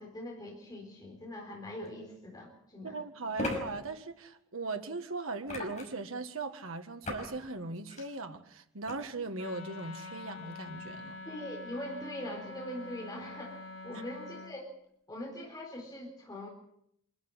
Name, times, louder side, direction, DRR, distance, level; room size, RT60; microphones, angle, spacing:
voice 1, 0.0-3.0 11.3-14.7 15.1-16.5, left 1 dB, 20° left, -1 dB, 4.2 m, -42 dB
sound 1, 1.9-2.0 3.4-3.6 5.5-6.0 7.0-7.3 7.8-8.1 8.9-9.0, left 2 dB, 35° left, 5.9 m, -36 dB
voice 2, 2.8-11.2 13.9-14.0, right 3 dB, 80° right, 6 dB, 1.9 m, -39 dB
Wind instrument woodwind instrument, 9.3-14.6, left 3 dB, 85° left, 5.9 m, -46 dB
26.0 x 12.5 x 10.0 m, 0.75 s
head